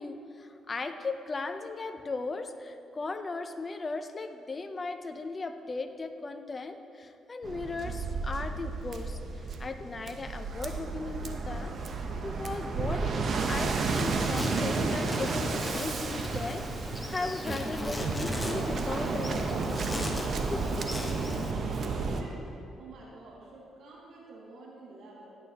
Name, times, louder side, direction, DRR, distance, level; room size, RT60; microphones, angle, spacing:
voice 1, 0.0-13.2 13.5-20.2 20.5-21.1, left 3 dB, 30° left, 7 dB, 0.7 m, -37 dB
Waves surf, 7.4-22.2, right 4 dB, 55° right, 0.9 m, -32 dB
Insect, 13.9-21.5, left 1 dB, 10° left, 1.2 m, -38 dB
voice 2, 20.8-22.5 22.8-25.3, right 2 dB, 75° right, -5 dB, 2.2 m, -49 dB
16.0 x 9.2 x 3.0 m, 2.8 s
cardioid pair, 90°, 0 cm